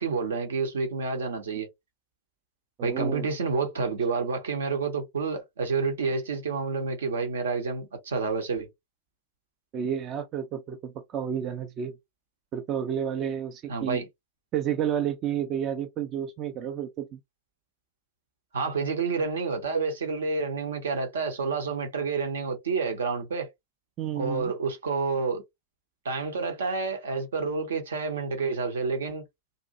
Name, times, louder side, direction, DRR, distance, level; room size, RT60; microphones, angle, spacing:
voice 1, 0.0-1.7 2.8-8.7 13.7-14.1 18.5-23.5 24.1-25.4 26.0-29.2, right 4 dB, 65° right, 0.8 m, -29 dB
voice 2, 2.8-3.3 9.7-11.9 12.5-14.0 14.5-17.2 24.0-24.5, right 9 dB, 35° right, 0.4 m, -31 dB
2.6 x 2.5 x 2.5 m
figure-of-eight pair, 90°, 0 cm